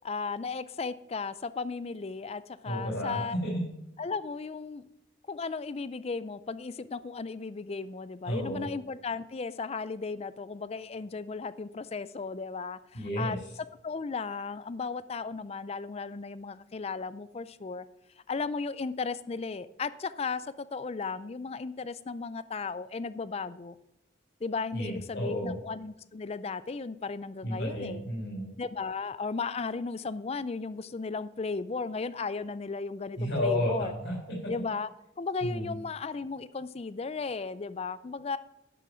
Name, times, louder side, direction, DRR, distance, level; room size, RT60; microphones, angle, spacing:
voice 1, 0.0-3.4 4.0-4.8 5.3-13.4 13.8-17.8 18.3-23.8 24.4-28.0 28.6-33.9 34.5-34.9 35.2-38.4, left 4 dB, 35° left, 15 dB, 0.4 m, -35 dB
voice 2, 2.6-3.6 8.3-8.7 12.9-13.4 24.7-25.6 27.4-28.5 33.2-34.5 35.4-35.7, equal, 70° left, -4 dB, 3.7 m, -32 dB
11.0 x 6.1 x 5.7 m, 0.86 s
head